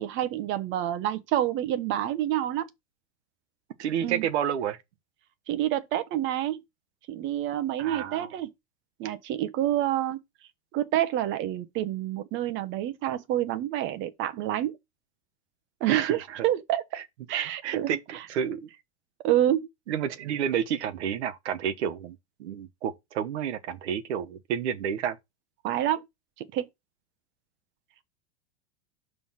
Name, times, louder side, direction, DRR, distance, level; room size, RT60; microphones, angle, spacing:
voice 1, 0.0-2.7 4.0-4.3 5.5-6.6 7.1-8.5 9.0-10.2 10.7-14.8 15.8-16.8 17.3-18.2 19.2-19.7 25.6-26.0 26.4-26.7, right 12 dB, 35° right, 0.7 m, -28 dB
voice 2, 3.8-4.8 7.8-8.3 15.9-16.4 16.9-17.0 17.3-18.7 19.9-25.2, right 8 dB, 75° right, 1.1 m, -30 dB
6.0 x 3.3 x 5.6 m
supercardioid pair, 135°, 34 cm